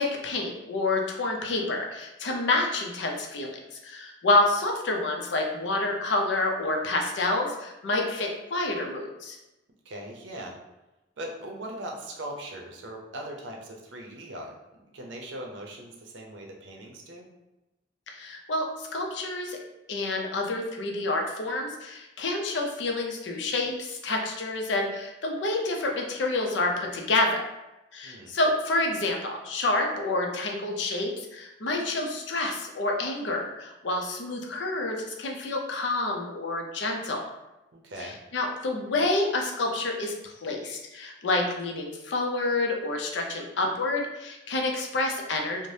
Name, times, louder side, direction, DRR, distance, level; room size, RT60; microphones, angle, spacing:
voice 1, 0.0-3.6 3.8-9.4 18.1-19.6 19.9-27.4 27.9-37.2 38.0-45.7, left 2 dB, 75° left, 1 dB, 0.5 m, -28 dB
voice 2, 9.8-10.6 11.2-14.5 14.8-17.3 28.0-28.3 37.7-38.2, right 1 dB, 90° right, 1 dB, 0.6 m, -40 dB
2.6 x 2.0 x 3.2 m, 0.99 s
head